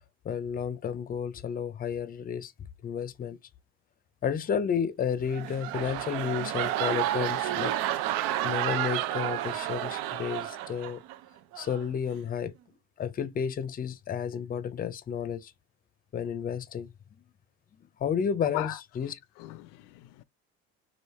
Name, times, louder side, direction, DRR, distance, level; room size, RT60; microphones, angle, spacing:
voice 1, 0.2-2.5 2.8-3.4 4.2-7.7 8.4-11.0 11.6-12.5 13.0-15.5 16.1-16.9 18.0-19.1, left 7 dB, 25° left, 0.6 m, -31 dB
sound 1, 5.2-11.2 11.5-11.9, right 13 dB, 75° right, 0.7 m, -31 dB
voice 2, 18.5-20.2, left 16 dB, 70° left, 0.5 m, -39 dB
3.4 x 2.6 x 4.2 m
supercardioid pair, 105°, 33 cm